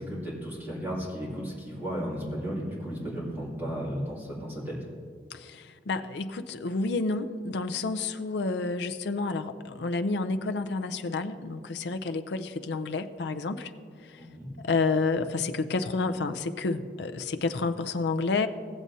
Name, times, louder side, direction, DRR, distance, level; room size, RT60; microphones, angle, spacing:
voice 1, 0.0-4.7 14.1-14.5, equal, 10° right, -8 dB, 2.5 m, -34 dB
voice 2, 5.3-13.7 14.0-14.2 14.6-18.5, left 3 dB, 70° left, 8 dB, 0.5 m, -30 dB
16.5 x 7.4 x 2.7 m, 2.2 s
head